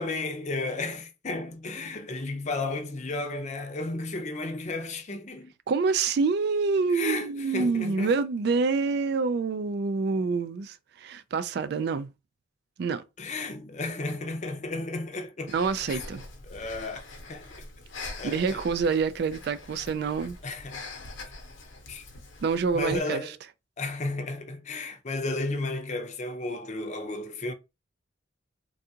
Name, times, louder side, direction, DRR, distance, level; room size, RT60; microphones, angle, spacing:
voice 1, 0.0-5.5 6.9-8.1 13.2-15.5 15.9-16.0 16.5-17.0 17.3-17.5 18.2-18.6 20.4-20.9 21.9-22.0 22.7-23.3 23.8-27.5, left 2 dB, 40° left, 0.5 m, -33 dB
voice 2, 5.7-12.1 12.8-13.0 15.5-16.2 18.2-20.4 22.4-23.2, right 4 dB, 55° right, 0.3 m, -27 dB
Breathing, 15.5-23.0, left 3 dB, 85° left, 0.8 m, -43 dB
3.6 x 2.3 x 2.7 m
head